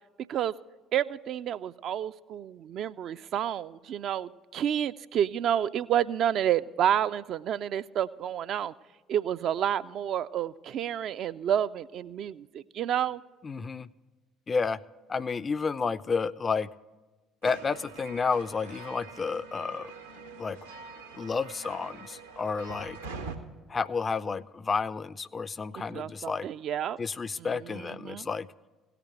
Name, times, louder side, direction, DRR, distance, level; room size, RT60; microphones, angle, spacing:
voice 1, 0.9-8.7 9.1-13.2 25.9-27.0 27.6-28.3, right 10 dB, 50° right, 12 dB, 0.3 m, -29 dB
voice 2, 13.4-13.9 14.5-14.8 15.1-16.7 17.4-19.9 20.4-20.6 21.2-23.0 23.7-26.5 27.0-28.5, left 5 dB, 30° left, 16 dB, 0.3 m, -31 dB
sound 1, 17.4-23.4, right 4 dB, 80° right, 0.8 m, -44 dB
17.0 x 5.9 x 9.1 m, 1.2 s
figure-of-eight pair, 55°, 0 cm